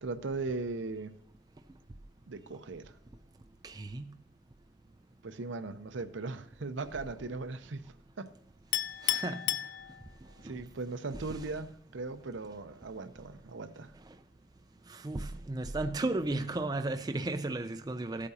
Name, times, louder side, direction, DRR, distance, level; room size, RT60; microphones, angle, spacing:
voice 1, 0.0-1.1 2.3-2.9 5.2-7.9 8.2-8.3 10.4-13.9, right 3 dB, 70° right, 0.7 m, -38 dB
voice 2, 3.6-4.0 9.0-9.5 11.3-11.4 14.9-18.3, right 2 dB, 20° right, 0.4 m, -34 dB
Chink clink, 8.7-10.4, left 14 dB, 60° left, 0.3 m, -33 dB
15.5 x 8.3 x 2.8 m
head